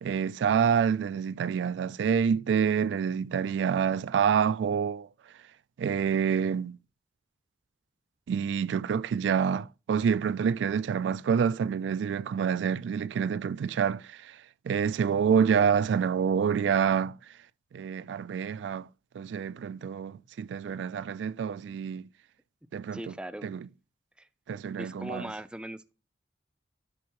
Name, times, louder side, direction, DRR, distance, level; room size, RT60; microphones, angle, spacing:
voice 1, 0.0-5.1 5.8-6.8 8.3-14.4 14.7-17.2 17.7-18.9 19.1-22.0 22.7-23.1 23.4-23.7 24.5-25.3, right 7 dB, 85° right, 0.3 m, -27 dB
voice 2, 22.9-23.5 24.2-24.3 24.8-25.9, right 1 dB, 5° right, 0.4 m, -39 dB
11.0 x 4.1 x 3.0 m
head